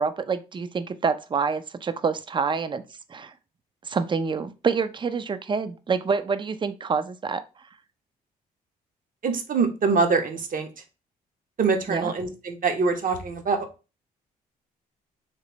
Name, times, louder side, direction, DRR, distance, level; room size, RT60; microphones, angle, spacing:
voice 1, 0.0-2.8 3.1-3.3 3.8-7.4 11.9-12.1, right 5 dB, 25° right, 12 dB, 0.4 m, -27 dB
voice 2, 9.2-10.7 11.6-13.7, right 4 dB, 45° right, 6 dB, 0.8 m, -24 dB
3.2 x 3.0 x 3.0 m, 0.31 s
hypercardioid pair, 50°, 19 cm